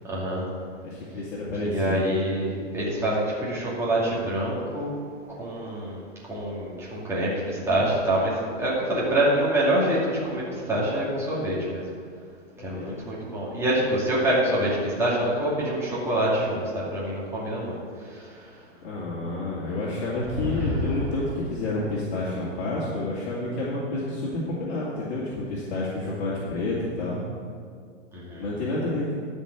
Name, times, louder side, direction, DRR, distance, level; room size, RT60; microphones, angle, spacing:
voice 1, 0.0-0.5 1.6-4.9 5.3-6.0 6.3-11.8 12.6-18.5 20.3-20.9 28.1-28.4, right 1 dB, 5° right, -8 dB, 2.5 m, -26 dB
voice 2, 0.8-2.0 12.6-13.0 18.8-27.2 28.4-29.1, left 2 dB, 60° left, -7 dB, 2.5 m, -29 dB
11.5 x 5.5 x 7.4 m, 2.1 s
hypercardioid pair, 145°, 37 cm